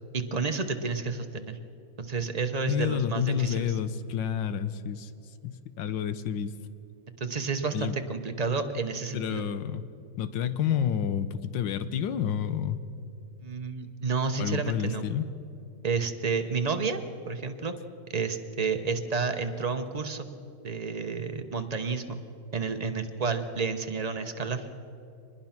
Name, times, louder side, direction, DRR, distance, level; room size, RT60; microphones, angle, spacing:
voice 1, 0.1-1.6 2.0-3.7 7.2-9.4 13.4-15.0 15.8-17.7 18.1-20.3 20.6-22.2 22.5-24.7, right 4 dB, 30° right, 7 dB, 0.7 m, -30 dB
voice 2, 2.7-5.1 5.4-6.5 7.7-8.0 9.1-9.8 10.2-12.8 14.4-15.3, left 8 dB, 80° left, 12 dB, 1.5 m, -29 dB
24.0 x 20.5 x 5.9 m, 2.6 s
omnidirectional pair, 2.0 m